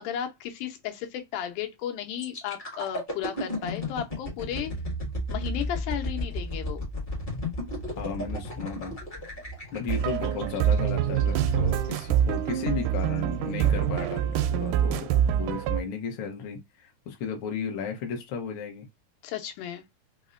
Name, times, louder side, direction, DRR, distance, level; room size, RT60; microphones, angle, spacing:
voice 1, 0.0-4.7 5.3-6.8 19.2-19.8, left 10 dB, 85° left, 2.3 m, -34 dB
sound 1, 2.2-12.0 12.5-12.7, left 1 dB, 30° left, 0.8 m, -34 dB
voice 2, 7.9-9.0 9.7-18.9, left 5 dB, 70° left, 1.2 m, -34 dB
sound 2, 9.9-15.8, right 9 dB, 85° right, 2.0 m, -25 dB
5.3 x 2.1 x 2.4 m
omnidirectional pair, 3.6 m